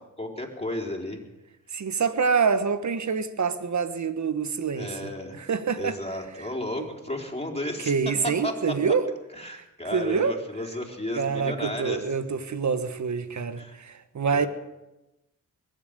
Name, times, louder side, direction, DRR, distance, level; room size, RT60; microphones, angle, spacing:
voice 1, 0.2-1.2 4.7-5.3 5.8-7.9 8.4-8.9 9.3-12.0 13.6-13.8 14.3-14.5, left 1 dB, 15° left, 4.0 m, -33 dB
voice 2, 1.7-4.9 5.3-6.0 6.8-6.9 7.9-9.0 9.5-9.6 9.9-10.3 11.1-14.5, right 5 dB, 55° right, 1.4 m, -26 dB
22.0 x 7.9 x 6.7 m
supercardioid pair, 45°, 36 cm